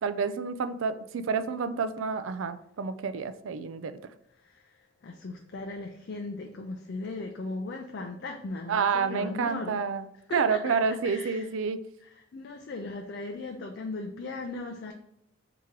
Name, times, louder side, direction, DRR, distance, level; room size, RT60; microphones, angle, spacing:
voice 1, 0.0-3.9 8.7-10.1 10.3-11.8, right 5 dB, 70° right, 11 dB, 0.4 m, -29 dB
voice 2, 4.4-9.8 10.3-11.5 12.0-14.9, left 3 dB, 55° left, 2 dB, 0.4 m, -38 dB
3.7 x 2.9 x 4.5 m, 0.74 s
head